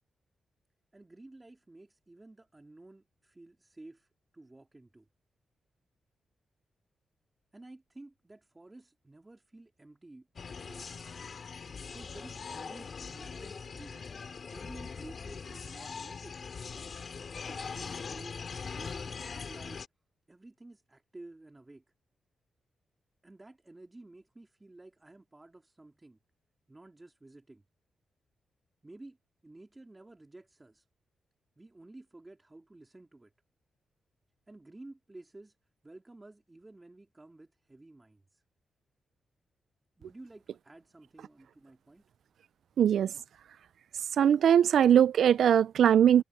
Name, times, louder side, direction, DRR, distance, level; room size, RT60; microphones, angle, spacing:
voice 1, 0.9-5.1 7.5-11.2 11.9-14.2 14.5-16.4 17.5-19.8 20.3-21.8 23.2-26.2 26.7-27.6 28.8-29.2 29.4-30.9 31.6-33.3 34.5-35.6 35.8-38.4 40.0-42.0, right 2 dB, 15° right, 3.4 m, -52 dB
sound 1, 10.4-19.9, left 5 dB, 45° left, 2.8 m, -41 dB
voice 2, 42.8-43.1 44.2-46.2, right 9 dB, 75° right, 0.3 m, -21 dB
cardioid pair, 110°, 0 cm